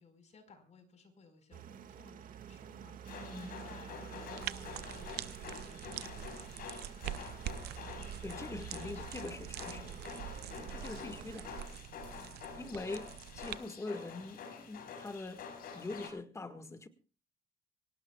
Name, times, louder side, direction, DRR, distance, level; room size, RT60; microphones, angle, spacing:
voice 1, 0.0-9.1 9.7-10.2 10.5-11.2 12.1-12.5, left 4 dB, 40° left, 4.7 m, -60 dB
sound 1, 1.5-11.6, right 8 dB, 55° right, 1.8 m, -49 dB
sound 2, 3.1-16.1, left 6 dB, 65° left, 5.3 m, -48 dB
sound 3, 4.4-13.6, right 13 dB, 75° right, 0.7 m, -45 dB
voice 2, 8.2-9.9 10.4-11.5 12.6-15.5 15.7-16.9, left 3 dB, 15° left, 1.6 m, -43 dB
25.0 x 18.0 x 2.3 m
cardioid pair, 110°, 17 cm